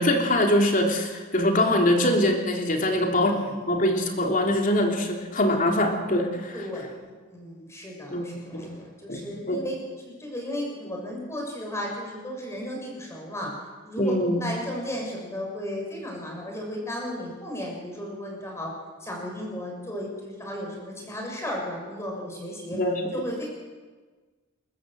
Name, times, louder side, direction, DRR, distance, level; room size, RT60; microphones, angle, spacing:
voice 1, 0.0-3.3 3.7-6.6 8.1-8.7 9.1-9.6 14.0-14.4 22.7-23.0, left 1 dB, 40° left, 2 dB, 3.1 m, -23 dB
voice 2, 2.9-3.6 6.5-13.5 13.8-18.7 19.0-22.8 23.1-23.5, left 1 dB, 15° left, -1 dB, 6.7 m, -35 dB
29.0 x 14.0 x 7.8 m, 1.4 s
head